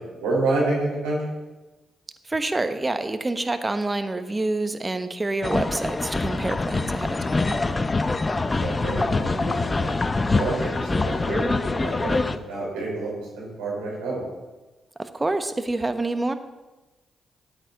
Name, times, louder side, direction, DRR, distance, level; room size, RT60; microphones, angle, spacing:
voice 1, 0.1-1.2 8.6-10.0 10.3-14.2, right 2 dB, 85° right, -4 dB, 4.4 m, -28 dB
voice 2, 2.3-7.6 15.0-16.3, right 2 dB, 25° right, 9 dB, 1.1 m, -27 dB
sound 1, 5.4-12.4, left 3 dB, 30° left, 0.7 m, -25 dB
13.0 x 8.9 x 4.1 m, 1.1 s
hypercardioid pair, 40°, 0 cm